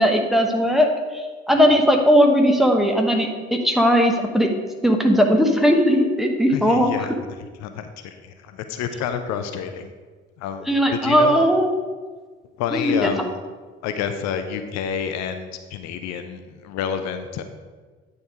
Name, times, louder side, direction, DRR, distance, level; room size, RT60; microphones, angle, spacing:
voice 1, 0.0-4.5 4.8-6.9 10.7-11.7 12.7-13.1, equal, ahead, 2 dB, 1.1 m, -18 dB
voice 2, 6.5-7.1 7.6-9.9 10.4-11.5 12.6-13.3 13.8-17.4, left 7 dB, 55° left, 8 dB, 0.7 m, -29 dB
9.2 x 4.1 x 4.9 m, 1.4 s
figure-of-eight pair, 45°, 33 cm